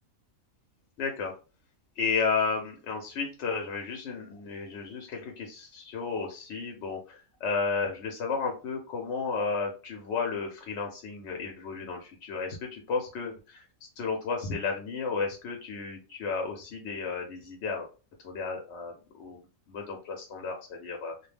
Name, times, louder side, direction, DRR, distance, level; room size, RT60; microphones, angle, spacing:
voice 1, 1.0-1.3 2.0-13.7 14.0-17.9 18.2-19.4 19.7-21.2, left 4 dB, 65° left, 2 dB, 0.7 m, -33 dB
2.4 x 2.1 x 3.2 m, 0.34 s
omnidirectional pair, 1.4 m